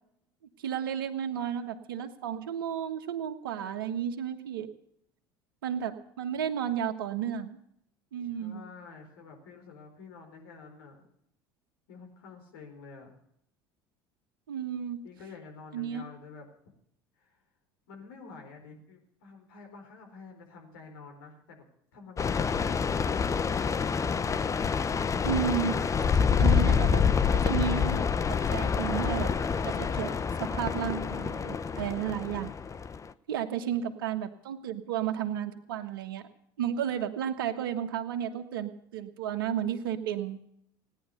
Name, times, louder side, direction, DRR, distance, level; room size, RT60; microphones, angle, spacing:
voice 1, 0.6-4.7 5.6-7.6 8.1-8.6 14.5-15.0 15.7-16.0 25.2-25.7 26.4-27.0 27.3-28.0 28.5-29.3 29.6-32.5 33.3-36.2 36.6-40.4, right 9 dB, 80° right, 7 dB, 1.4 m, -32 dB
voice 2, 8.3-11.1 11.9-13.2 15.0-16.5 17.2-17.4 17.9-21.7 21.9-23.2 33.7-33.8, left 4 dB, 75° left, 2 dB, 4.5 m, -49 dB
sound 1, 22.2-33.1, left 6 dB, 25° left, 0.8 m, -27 dB
17.5 x 10.5 x 6.7 m, 0.72 s
hypercardioid pair, 70°, 12 cm